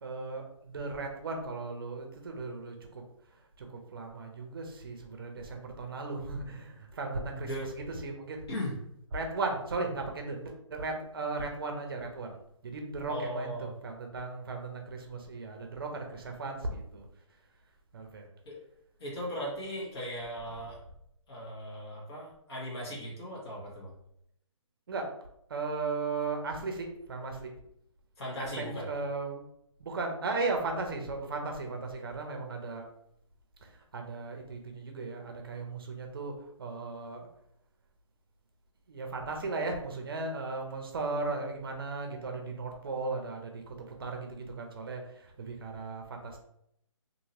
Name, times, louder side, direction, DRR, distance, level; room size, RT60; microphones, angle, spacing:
voice 1, 0.0-3.0 3.6-7.5 7.7-8.4 9.1-17.1 17.9-18.3 24.9-25.1 25.5-27.5 28.6-29.4 29.8-32.8 33.6-37.2 38.9-46.4, right 3 dB, 45° right, 3 dB, 0.6 m, -36 dB
voice 2, 7.3-7.7 8.5-8.7 13.1-13.7 18.4-18.6 19.0-20.8 21.3-23.9 28.2-28.9, equal, 50° left, -5 dB, 1.4 m, -38 dB
2.8 x 2.8 x 2.7 m, 0.74 s
hypercardioid pair, 160°, 17 cm